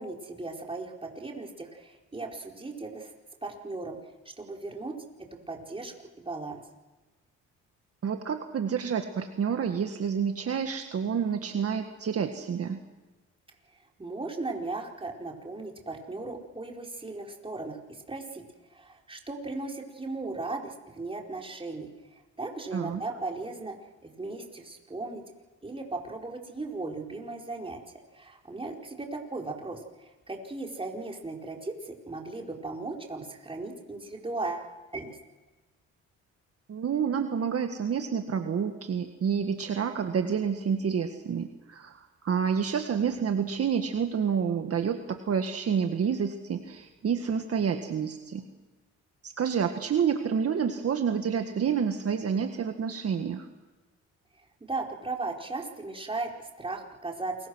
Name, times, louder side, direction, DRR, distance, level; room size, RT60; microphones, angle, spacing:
voice 1, 0.0-3.1 3.4-4.0 4.4-4.9 5.5-6.6 14.0-18.4 18.7-21.9 22.4-23.7 24.0-25.2 25.6-27.8 28.1-35.1 54.6-57.5, right 3 dB, 20° right, 1 dB, 4.6 m, -37 dB
voice 2, 8.0-12.8 22.7-23.0 36.7-48.4 49.2-53.5, right 7 dB, 50° right, 6 dB, 1.8 m, -29 dB
28.5 x 22.5 x 6.4 m, 1.2 s
cardioid pair, 90°, 30 cm